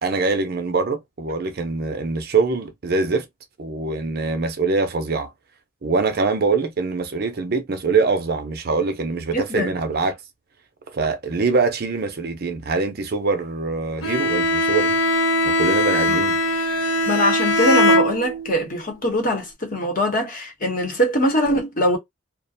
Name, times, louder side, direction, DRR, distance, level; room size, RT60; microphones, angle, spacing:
voice 1, 0.0-3.3 3.6-5.3 5.8-10.2 10.9-15.0 15.4-16.4, right 4 dB, 50° right, 0.5 m, -23 dB
voice 2, 9.3-9.7 16.1-16.2 17.1-22.0, equal, 40° left, 0.9 m, -22 dB
Bowed string instrument, 14.0-18.6, left 1 dB, 85° left, 0.7 m, -20 dB
2.4 x 2.1 x 2.6 m
head